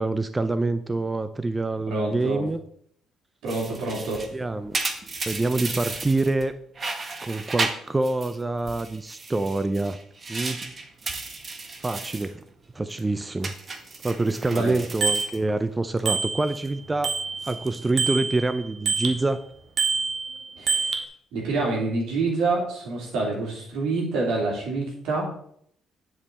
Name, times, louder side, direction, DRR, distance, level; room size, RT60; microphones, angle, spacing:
voice 1, 0.0-2.6 4.3-4.8 5.3-6.5 7.2-10.0 10.3-10.7 11.8-12.4 12.7-13.5 14.0-17.2 17.5-19.4, right 2 dB, 20° right, 11 dB, 0.5 m, -26 dB
voice 2, 1.9-2.4 3.4-4.2 14.5-14.8 20.6-20.9 21.3-25.5, right 3 dB, 80° right, -2 dB, 3.2 m, -27 dB
sound 1, 3.5-6.5 6.8-8.4 8.7-12.3 12.7-13.0 13.4-16.0 16.3-16.7 17.3-17.9, right 3 dB, 35° right, 1.2 m, -34 dB
Bicycle bell, 15.0-15.3 16.1-16.7 17.0-19.2 19.8-21.0, right 5 dB, 55° right, 1.1 m, -26 dB
9.5 x 5.2 x 4.2 m, 0.65 s
cardioid pair, 90°, 0 cm